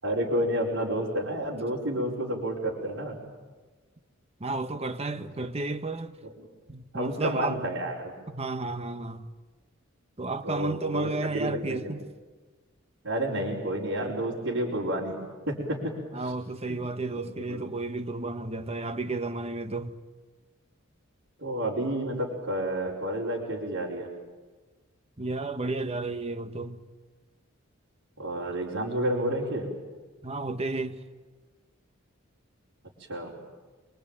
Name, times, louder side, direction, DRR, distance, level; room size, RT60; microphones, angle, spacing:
voice 1, 0.0-3.2 6.2-6.5 6.9-8.1 10.4-12.0 13.0-16.3 16.7-16.8 17.1-17.7 21.4-24.1 28.2-29.7 33.1-33.3, right 1 dB, 70° right, 5.0 m, -30 dB
voice 2, 4.4-6.2 6.7-7.6 8.3-9.3 10.2-12.0 16.1-20.0 25.2-26.8 30.2-31.0, right 3 dB, 30° right, 1.4 m, -32 dB
26.5 x 23.5 x 9.1 m
head